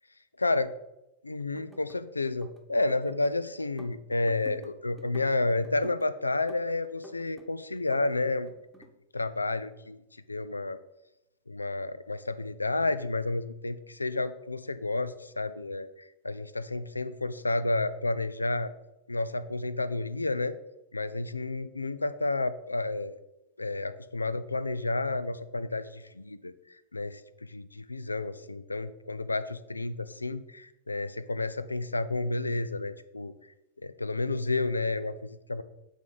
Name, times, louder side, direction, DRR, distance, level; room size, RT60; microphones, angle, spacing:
voice 1, 0.4-0.7 1.2-8.5 9.1-10.0 10.3-10.8 11.5-18.7 19.1-20.6 20.9-23.2 23.6-33.3 33.8-35.6, left 2 dB, 80° left, 14 dB, 0.4 m, -31 dB
sound 1, 1.4-2.0 2.3-3.3 3.6-4.7 5.0-6.1 6.5-7.5 7.8-8.9, right 1 dB, 5° right, 1.0 m, -51 dB
8.2 x 3.9 x 4.9 m, 0.91 s
figure-of-eight pair, 90°, 0 cm